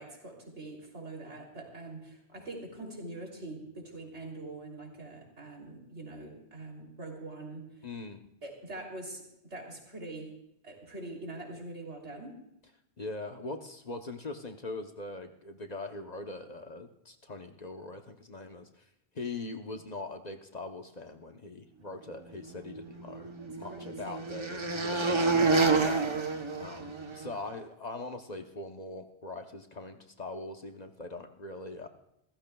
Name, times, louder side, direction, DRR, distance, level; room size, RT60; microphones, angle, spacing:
voice 1, 0.0-7.9 8.4-12.4 23.4-24.2, right 2 dB, 80° right, 0 dB, 3.4 m, -44 dB
voice 2, 7.8-8.2 13.0-18.8 19.1-26.1 26.6-31.9, left 2 dB, 40° left, 6 dB, 0.9 m, -41 dB
sound 1, 22.7-27.3, right 3 dB, 25° right, 1.0 m, -28 dB
28.0 x 14.5 x 2.3 m, 0.81 s
omnidirectional pair, 1.2 m